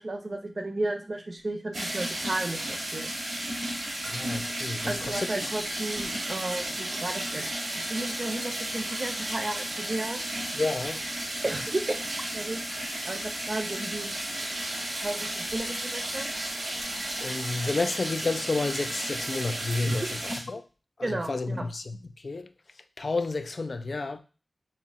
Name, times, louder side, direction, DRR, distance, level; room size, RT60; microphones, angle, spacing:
voice 1, 0.0-3.1 4.9-10.2 11.4-12.0 12.3-12.6 13.0-14.2 15.0-16.3 19.8-20.0 21.0-21.6, right 2 dB, 45° right, 0.7 m, -33 dB
sound 1, 1.7-20.4, right 1 dB, 90° right, 1.5 m, -33 dB
voice 2, 4.0-5.5 10.5-11.1 17.2-20.0 20.5-20.6 21.0-22.0 22.2-22.5 23.0-24.2, left 3 dB, 55° left, 0.4 m, -30 dB
4.3 x 2.1 x 3.5 m
cardioid pair, 60°, 0 cm